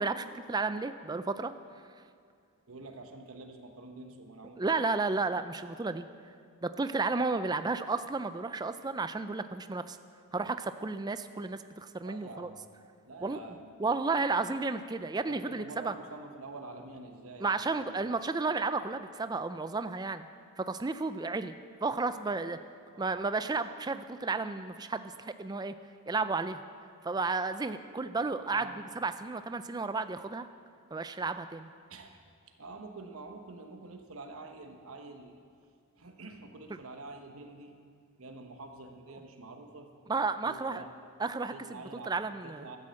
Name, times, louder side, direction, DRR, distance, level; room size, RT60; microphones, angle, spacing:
voice 1, 0.0-1.5 4.6-6.1 6.6-10.0 10.3-12.5 13.2-13.4 13.8-15.9 17.4-20.3 20.6-21.5 21.8-22.6 23.0-25.7 26.1-26.6 27.0-28.7 29.0-30.5 30.9-31.7 40.1-40.8 41.2-41.5 42.1-42.7, right 3 dB, 20° right, 10 dB, 0.3 m, -32 dB
voice 2, 2.7-4.9 12.0-12.7 13.0-13.7 15.3-17.9 22.9-23.2 28.5-28.8 31.9-32.2 32.6-35.4 36.0-37.7 38.2-39.9 40.4-41.1 41.5-42.2 42.4-42.8, right 3 dB, 70° right, 4 dB, 1.1 m, -47 dB
13.0 x 9.9 x 7.6 m, 2.2 s
head